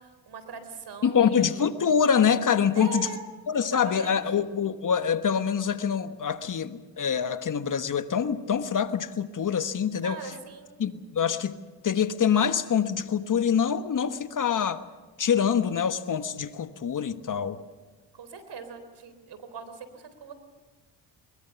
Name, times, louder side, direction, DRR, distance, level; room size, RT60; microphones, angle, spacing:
voice 1, 0.0-1.7 2.7-3.3 3.6-4.5 10.0-10.8 18.1-20.3, right 6 dB, 60° right, 3.8 m, -41 dB
voice 2, 1.0-3.1 3.5-10.2 10.8-11.5 11.8-14.8 15.2-17.6, left 7 dB, 45° left, 1.4 m, -25 dB
22.0 x 22.0 x 7.1 m
supercardioid pair, 70°, 45 cm